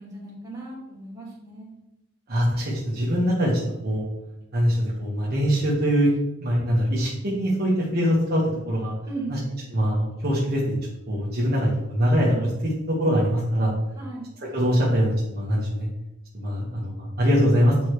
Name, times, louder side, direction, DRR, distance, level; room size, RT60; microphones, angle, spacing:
voice 1, 0.0-1.7 9.0-9.4 13.9-14.3, right 2 dB, 20° right, -6 dB, 2.7 m, -36 dB
voice 2, 2.3-4.1 4.5-6.1 6.4-8.9 9.3-9.4 9.7-10.6 11.1-13.7 14.5-15.9 16.3-17.9, equal, 50° right, -5 dB, 1.5 m, -23 dB
9.0 x 4.5 x 3.2 m, 0.92 s
head